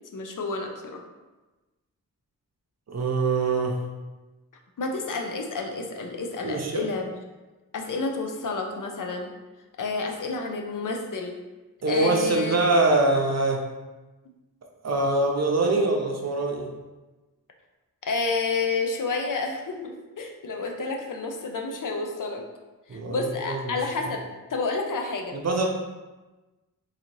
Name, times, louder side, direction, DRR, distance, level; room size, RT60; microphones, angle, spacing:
voice 1, 0.1-1.0 4.8-7.1 7.7-9.3 9.8-11.3 11.9-12.6 18.1-22.4 22.9-24.2 24.5-25.4, left 3 dB, 60° left, 2 dB, 0.5 m, -30 dB
voice 2, 2.9-3.8 6.4-6.8 11.8-13.6 14.8-16.7 22.9-23.8 25.3-25.7, right 2 dB, 50° right, 1 dB, 0.6 m, -24 dB
3.9 x 2.6 x 3.0 m, 1.1 s
wide cardioid pair, 105°, 35 cm